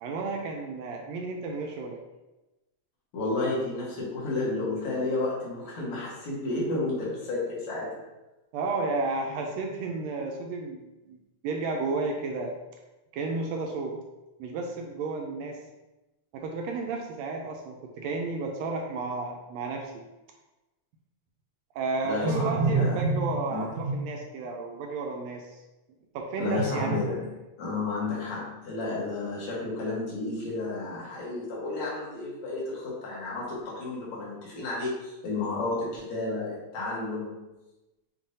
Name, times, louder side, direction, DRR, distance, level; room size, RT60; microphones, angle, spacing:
voice 1, 0.0-2.0 8.5-10.8 11.1-11.2 11.4-12.5 13.1-14.0 14.4-15.6 16.3-20.0 21.7-25.6 26.1-27.0, right 3 dB, 80° right, 1 dB, 1.6 m, -31 dB
voice 2, 3.1-7.9 22.0-23.0 23.5-23.7 26.4-27.2 27.6-37.4, left 2 dB, 70° left, -6 dB, 2.5 m, -32 dB
7.1 x 2.6 x 2.7 m, 1.0 s
omnidirectional pair, 3.5 m